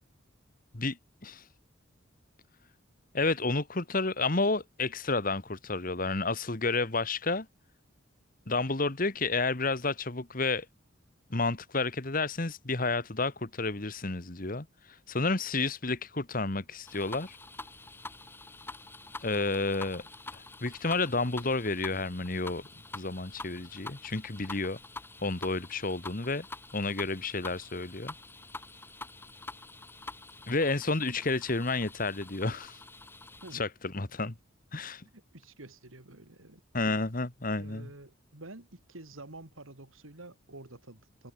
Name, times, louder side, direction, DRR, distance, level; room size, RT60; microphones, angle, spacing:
voice 1, 3.1-7.5 8.5-10.7 11.3-17.4 19.2-20.0 20.3-22.7 22.9-24.8 25.2-26.5 26.7-28.1 30.5-32.8 33.5-34.4 34.7-35.0 36.7-37.9, left 3 dB, 45° left, 1.6 m, -31 dB
sound 1, 16.8-33.6, left 3 dB, 10° left, 1.1 m, -46 dB
voice 2, 35.1-36.6 37.5-41.3, right 2 dB, 85° right, 2.8 m, -49 dB
head